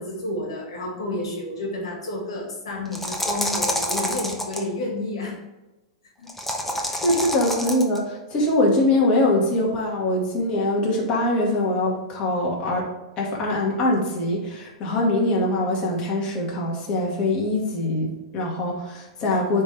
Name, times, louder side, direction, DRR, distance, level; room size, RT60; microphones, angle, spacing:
voice 1, 0.0-5.4 6.2-6.3 6.8-7.0 19.2-19.3, left 1 dB, 80° left, -1 dB, 1.9 m, -31 dB
sound 1, 2.9-4.6 6.3-8.0, left 1 dB, 5° left, 1.1 m, -27 dB
voice 2, 6.9-12.8 13.2-19.6, left 1 dB, 35° left, -3 dB, 2.1 m, -23 dB
9.3 x 3.7 x 3.5 m, 1.0 s
hypercardioid pair, 115°, 3 cm